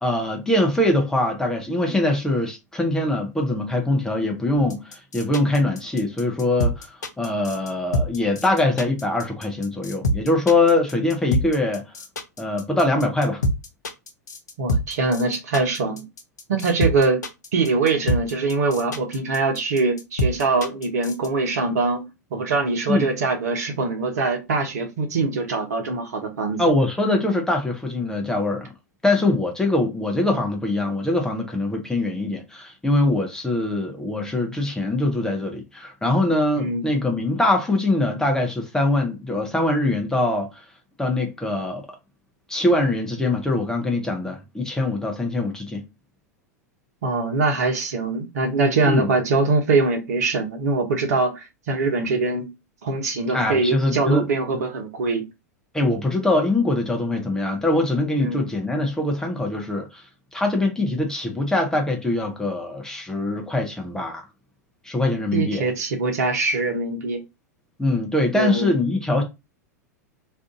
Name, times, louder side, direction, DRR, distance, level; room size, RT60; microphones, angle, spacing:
voice 1, 0.0-11.9 12.4-13.4 22.9-23.1 26.6-28.7 29.0-40.5 41.0-41.9 42.5-45.9 48.9-49.1 53.3-54.3 55.7-60.0 60.3-64.3 64.8-65.7 67.8-69.2, left 2 dB, 5° left, 0.6 m, -23 dB
sound 1, 4.6-21.3, equal, 75° left, 0.6 m, -26 dB
voice 2, 14.6-16.0 16.5-17.2 17.5-26.6 36.6-36.9 47.0-52.5 52.8-55.2 58.2-58.4 65.3-67.2 68.3-68.8, right 3 dB, 65° right, 0.9 m, -23 dB
2.6 x 2.5 x 3.7 m
figure-of-eight pair, 90°, 9 cm